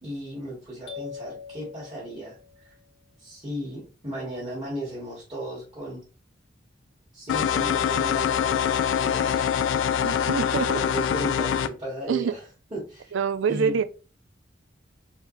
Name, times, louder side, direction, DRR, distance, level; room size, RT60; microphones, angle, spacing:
voice 1, 0.0-2.8 3.2-6.0 7.1-9.5 10.7-12.4 12.7-13.2 13.5-13.9, right 1 dB, 25° right, 2.0 m, -36 dB
sound 1, 0.9-2.8, left 6 dB, 65° left, 1.2 m, -42 dB
sound 2, 7.3-11.7, left 8 dB, 85° left, 0.3 m, -24 dB
voice 2, 10.0-10.8 12.1-12.3 13.1-13.8, right 6 dB, 85° right, 0.4 m, -25 dB
4.3 x 3.3 x 3.2 m
head